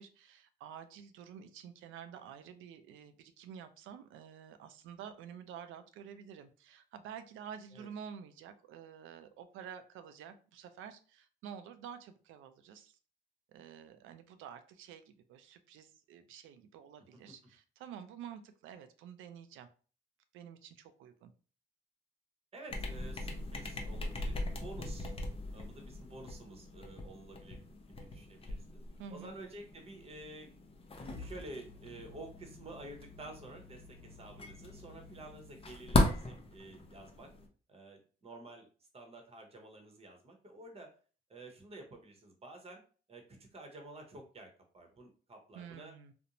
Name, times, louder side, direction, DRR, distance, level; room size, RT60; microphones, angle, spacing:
voice 1, 0.0-13.0 13.5-19.7 20.3-21.3 29.0-29.3 45.5-46.1, right 8 dB, 85° right, 10 dB, 0.4 m, -49 dB
voice 2, 22.5-25.1 25.5-27.6 28.0-28.8 29.1-30.5 31.2-37.3 37.7-38.7 38.9-40.9 41.3-42.8 43.1-44.5 44.7-45.9, right 2 dB, 30° right, 3 dB, 0.8 m, -50 dB
sound 1, 22.7-37.5, left 2 dB, 30° left, 0.6 m, -38 dB
2.5 x 2.1 x 2.9 m, 0.39 s
cardioid pair, 90°, 20 cm